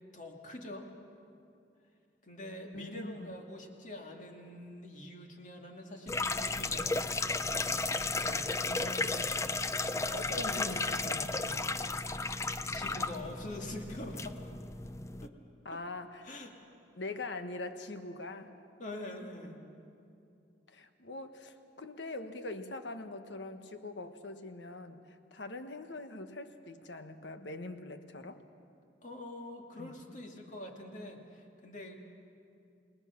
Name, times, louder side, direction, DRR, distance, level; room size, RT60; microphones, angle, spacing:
voice 1, 0.1-0.9 2.2-7.0 8.1-8.6 10.3-11.3 12.7-14.4 15.2-15.3 15.7-15.8 16.2-16.5 18.8-19.6 29.0-32.0, left 1 dB, 45° left, 2 dB, 2.3 m, -44 dB
voice 2, 2.7-3.3 8.2-9.4 10.1-11.6 13.0-13.1 15.6-16.3 16.9-18.6 20.7-28.4 29.8-30.1, left 2 dB, 80° left, 8 dB, 1.3 m, -43 dB
sound 1, 6.1-15.3, left 3 dB, 15° left, 0.5 m, -34 dB
29.0 x 19.5 x 6.0 m, 2.6 s
head